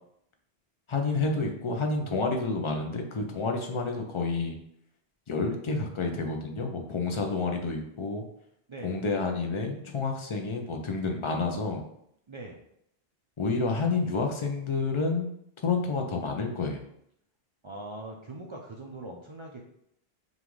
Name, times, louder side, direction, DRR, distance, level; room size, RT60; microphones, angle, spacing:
voice 1, 0.9-4.6 5.3-8.2 8.8-11.9 13.4-15.3 15.6-16.8, left 3 dB, 40° left, 3 dB, 0.5 m, -29 dB
voice 2, 8.7-9.0 12.3-12.6 17.6-19.6, right 2 dB, 50° right, -1 dB, 0.4 m, -41 dB
5.3 x 2.5 x 3.1 m, 0.74 s
omnidirectional pair, 1.0 m